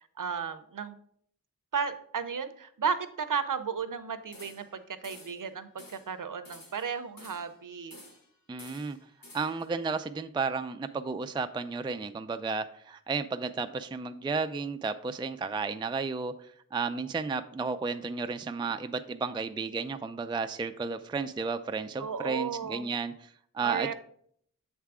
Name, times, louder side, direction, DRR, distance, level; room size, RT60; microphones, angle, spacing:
voice 1, 0.2-0.9 1.7-8.0 22.0-22.9 23.6-23.9, right 6 dB, 70° right, 11 dB, 0.6 m, -34 dB
sound 1, 4.3-4.8 5.0-5.4 5.8-6.1 6.4-7.6 7.9-8.3 8.6-9.7, left 1 dB, 90° left, 1.4 m, -51 dB
voice 2, 8.5-9.0 9.3-23.9, right 4 dB, 15° right, 9 dB, 0.3 m, -33 dB
7.3 x 3.5 x 4.8 m, 0.65 s
wide cardioid pair, 55°, 33 cm